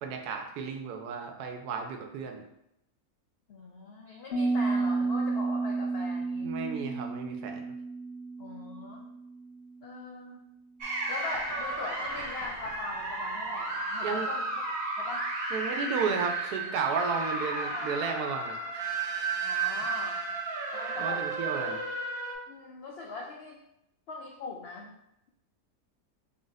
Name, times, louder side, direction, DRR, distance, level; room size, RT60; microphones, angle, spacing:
voice 1, 0.0-2.4 6.4-7.6 14.0-14.3 15.5-18.9 21.0-21.8, right 5 dB, 85° right, 4 dB, 1.2 m, -33 dB
voice 2, 3.5-6.5 8.4-9.1 9.8-10.4 11.1-14.5 15.0-15.3 19.4-20.2 20.7-21.3 22.5-23.6 24.1-24.9, left 3 dB, 80° left, -1 dB, 0.5 m, -40 dB
Piano, 4.3-9.9, right 3 dB, 50° left, 0.8 m, -32 dB
sound 1, 10.8-22.3, right 3 dB, 65° right, 1.2 m, -33 dB
3.8 x 2.5 x 3.9 m, 0.81 s
omnidirectional pair, 1.6 m